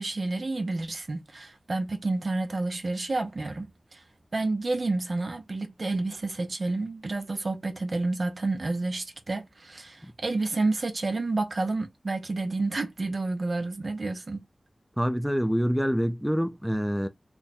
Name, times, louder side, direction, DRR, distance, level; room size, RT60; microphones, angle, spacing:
voice 1, 0.0-4.0 4.3-14.4, right 2 dB, 65° right, 0.8 m, -30 dB
voice 2, 15.0-17.1, equal, ahead, 0.6 m, -26 dB
3.5 x 2.2 x 4.2 m
wide cardioid pair, 55°, 0 cm